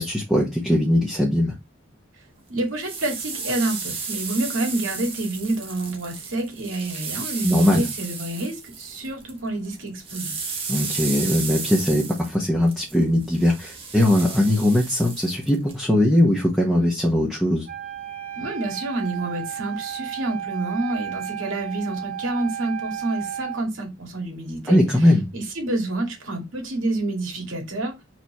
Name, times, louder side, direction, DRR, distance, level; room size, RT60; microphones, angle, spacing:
voice 1, 0.0-1.5 7.4-7.8 10.7-17.7 24.7-25.3, left 1 dB, ahead, 1.3 m, -20 dB
voice 2, 2.5-10.4 18.4-24.8 25.3-27.9, right 2 dB, 90° right, 2.4 m, -28 dB
sound 1, 2.6-9.4 9.6-15.7, right 5 dB, 30° right, 1.4 m, -33 dB
Wind instrument woodwind instrument, 17.7-23.6, right 10 dB, 45° right, 1.2 m, -33 dB
4.7 x 4.0 x 5.4 m
head